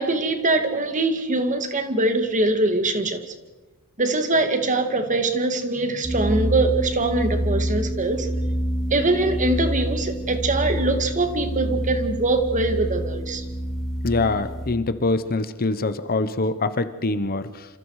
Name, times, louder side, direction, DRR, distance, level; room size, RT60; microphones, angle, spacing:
voice 1, 0.0-3.2 4.0-8.3 8.9-13.4, right 2 dB, 35° right, 7 dB, 2.1 m, -23 dB
sound 1, 6.0-14.7, equal, ahead, 6.5 m, -27 dB
voice 2, 14.0-17.7, left 3 dB, 45° left, 12 dB, 1.0 m, -24 dB
27.5 x 27.0 x 4.9 m, 1.1 s
head